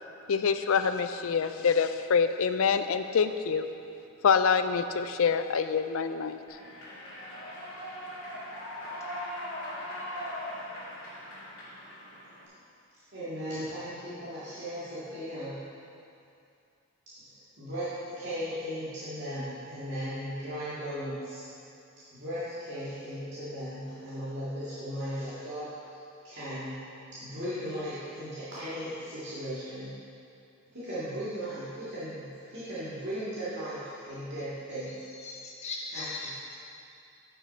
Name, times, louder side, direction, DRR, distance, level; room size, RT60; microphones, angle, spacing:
voice 1, 0.3-3.7 4.2-6.4, left 6 dB, 70° left, 10 dB, 0.4 m, -26 dB
Human voice / Clapping / Cheering, 6.5-12.5, left 1 dB, 90° left, 2.2 m, -40 dB
voice 2, 13.1-15.6 17.2-21.5 22.1-25.7 26.2-26.8 27.1-29.9 30.7-34.9 35.9-36.3, equal, 55° right, -13 dB, 2.1 m, -37 dB
voice 3, 35.2-36.6, left 3 dB, 30° left, -2 dB, 1.1 m, -38 dB
11.0 x 6.0 x 4.3 m, 2.6 s
head